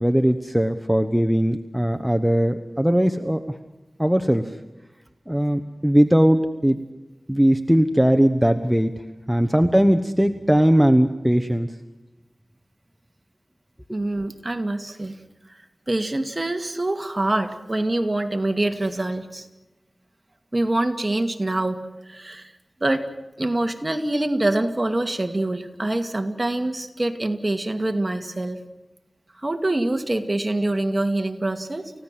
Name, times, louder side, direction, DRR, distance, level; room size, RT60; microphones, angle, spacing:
voice 1, 0.0-3.4 4.0-4.5 5.3-6.8 7.3-8.9 9.3-11.7, equal, 5° right, 6 dB, 1.1 m, -19 dB
voice 2, 13.9-15.1 15.9-19.5 20.5-21.8 22.1-22.5 22.8-23.1 23.4-28.6 29.4-31.9, right 1 dB, 30° right, 6 dB, 2.2 m, -25 dB
29.5 x 16.0 x 7.6 m, 1.1 s
wide cardioid pair, 55°, 0 cm